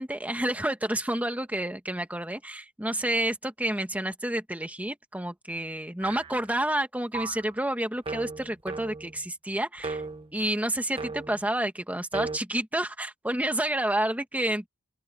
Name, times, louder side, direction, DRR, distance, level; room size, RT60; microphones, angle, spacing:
voice 1, 0.0-10.0 10.3-14.7, right 1 dB, 5° right, 1.9 m, -29 dB
sound 1, 6.0-6.5 7.1-7.5 8.1-9.2 9.8-10.3 11.0-11.4 12.1-12.4, right 3 dB, 25° right, 1.6 m, -36 dB
open air
head